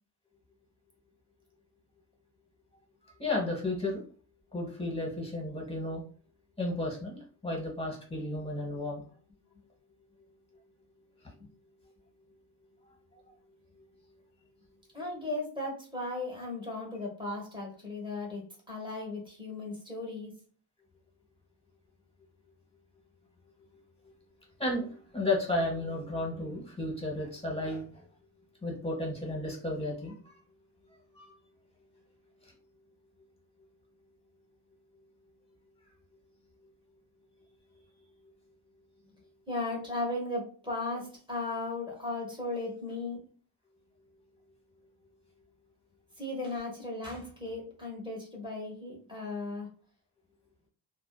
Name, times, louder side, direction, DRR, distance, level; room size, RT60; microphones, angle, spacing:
voice 1, 3.2-4.0 4.5-6.0 6.6-9.0 24.6-28.0 28.6-30.3 31.1-31.2 32.4-32.5, left 2 dB, 15° left, -2 dB, 0.9 m, -33 dB
voice 2, 14.9-20.3 39.5-43.2 46.2-49.7, left 2 dB, 10° right, -3 dB, 1.0 m, -36 dB
2.7 x 2.1 x 2.2 m, 0.42 s
wide cardioid pair, 115°, 46 cm